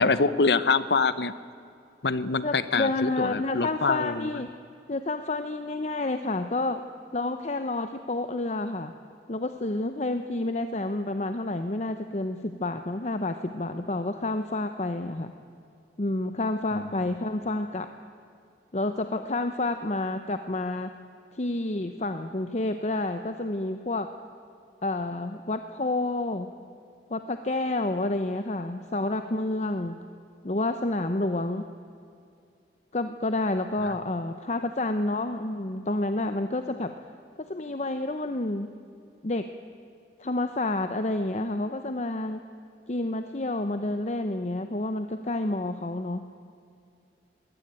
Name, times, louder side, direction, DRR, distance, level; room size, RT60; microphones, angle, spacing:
voice 1, 0.0-1.3 2.0-4.4 16.7-16.9 33.8-33.9, left 4 dB, 70° left, 15 dB, 0.8 m, -25 dB
voice 2, 2.4-4.5 4.9-6.8 7.1-8.9 9.3-15.3 16.0-17.9 18.7-20.9 21.3-24.1 24.8-26.5 27.1-30.0 30.4-31.6 32.9-36.9 37.5-38.7 39.2-39.5 40.2-42.4 42.9-46.2, left 2 dB, 40° left, 8 dB, 0.8 m, -29 dB
21.5 x 17.0 x 8.8 m, 2.5 s
head